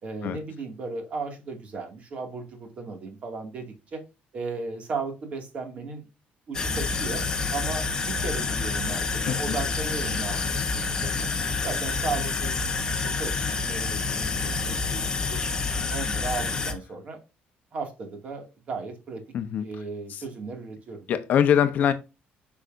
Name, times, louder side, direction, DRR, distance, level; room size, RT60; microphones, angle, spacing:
voice 1, 0.0-4.0 4.3-6.1 6.5-7.2 7.5-11.3 11.6-12.6 12.9-15.4 15.8-17.2 17.7-19.2 19.6-21.1, right 4 dB, 35° right, 2.2 m, -35 dB
sound 1, 6.5-16.7, left 4 dB, 20° left, 1.0 m, -28 dB
voice 2, 9.2-9.6 19.3-19.6 20.1-20.2 21.1-21.9, left 9 dB, 45° left, 0.9 m, -23 dB
8.0 x 6.0 x 2.6 m
cardioid pair, 175°, 4 cm